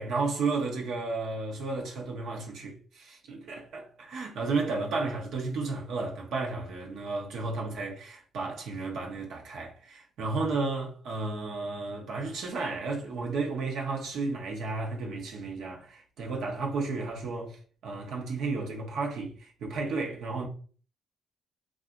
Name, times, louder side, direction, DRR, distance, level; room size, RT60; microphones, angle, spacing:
voice 1, 0.0-20.5, right 3 dB, 75° right, 0.8 m, -33 dB
2.7 x 2.3 x 2.4 m
cardioid pair, 90°, 0 cm